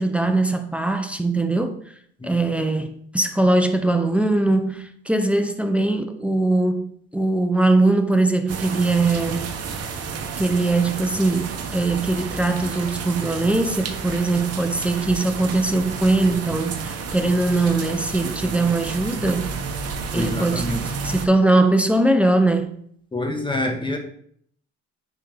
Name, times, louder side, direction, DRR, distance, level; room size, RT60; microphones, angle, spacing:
voice 1, 0.0-1.8 2.2-9.5 10.4-19.5 20.1-20.6 21.0-22.7, right 2 dB, 5° right, 7 dB, 0.6 m, -21 dB
sound 1, 8.5-21.3, right 5 dB, 55° right, 1.0 m, -31 dB
voice 2, 20.1-20.8 23.1-24.0, left 1 dB, 15° left, 3 dB, 1.4 m, -26 dB
9.2 x 3.5 x 3.4 m, 0.64 s
cardioid pair, 100°, 29 cm